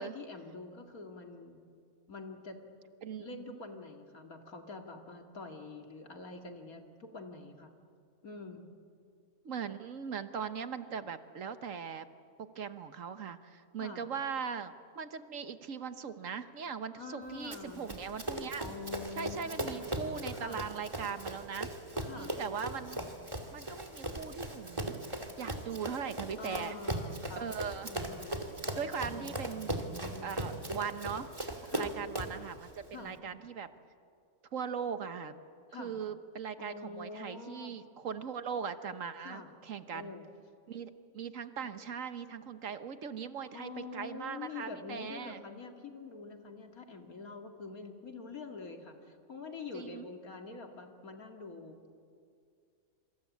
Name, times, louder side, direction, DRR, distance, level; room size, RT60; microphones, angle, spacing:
voice 1, 0.0-1.6 2.1-2.6 3.2-7.7 8.2-8.7 13.8-14.0 16.9-17.9 18.6-19.9 20.4-20.7 22.0-22.4 26.4-27.5 27.9-28.5 29.1-30.4 31.7-31.9 32.9-33.2 35.7-36.0 36.6-37.8 39.2-39.5 39.9-40.3 41.6-41.7 43.5-52.0, left 3 dB, 75° left, 4 dB, 2.7 m, -46 dB
voice 2, 3.0-3.6 9.4-12.1 12.4-18.6 19.2-21.7 22.1-23.0 23.5-26.8 27.4-27.9 28.7-29.8 30.2-31.3 31.7-33.7 34.5-35.3 35.8-40.1 40.7-45.4 49.7-50.0, right 6 dB, 65° right, 10 dB, 1.4 m, -40 dB
Run, 17.5-32.4, right 1 dB, 20° right, 2.4 m, -39 dB
26.5 x 26.0 x 8.4 m, 2.3 s
omnidirectional pair, 1.5 m